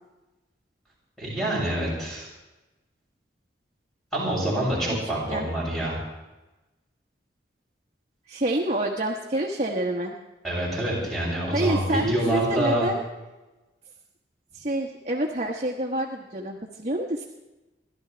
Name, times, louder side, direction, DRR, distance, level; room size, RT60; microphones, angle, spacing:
voice 1, 1.2-2.3 4.1-6.0 10.4-12.9, right 1 dB, ahead, -6 dB, 7.5 m, -26 dB
voice 2, 5.0-5.5 8.3-10.1 11.5-13.0 14.5-17.2, right 1 dB, 40° right, 0 dB, 1.2 m, -28 dB
28.5 x 12.5 x 3.4 m, 1.1 s
head